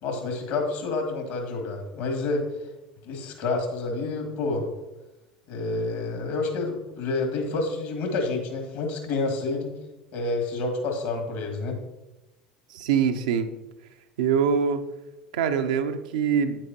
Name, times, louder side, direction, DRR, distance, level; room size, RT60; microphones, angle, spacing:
voice 1, 0.0-2.5 3.0-4.6 5.5-9.7 10.1-11.8, left 3 dB, 60° left, 3 dB, 2.1 m, -28 dB
voice 2, 12.7-13.5 14.2-14.8 15.3-16.6, right 7 dB, 70° right, 6 dB, 0.7 m, -24 dB
9.1 x 8.7 x 2.8 m, 0.98 s
figure-of-eight pair, 70°, 4 cm